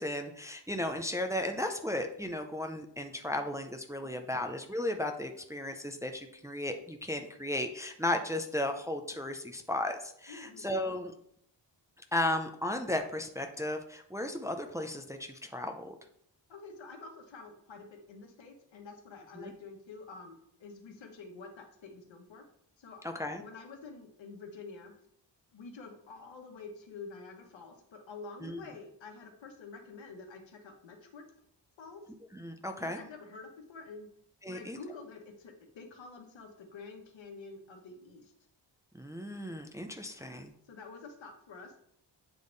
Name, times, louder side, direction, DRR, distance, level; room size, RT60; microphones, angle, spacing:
voice 1, 0.0-11.1 12.1-16.0 19.4-19.5 23.0-23.4 28.4-28.6 32.3-33.0 34.4-34.8 38.9-40.5, left 1 dB, 5° right, 4 dB, 0.5 m, -35 dB
voice 2, 4.0-4.4 10.3-10.7 16.5-22.4 22.8-23.0 23.4-24.9 25.5-31.2 31.8-32.0 32.8-34.1 34.5-38.3 40.0-41.8, left 4 dB, 85° left, 2 dB, 1.3 m, -48 dB
8.3 x 3.5 x 3.9 m, 0.69 s
wide cardioid pair, 115°, 44 cm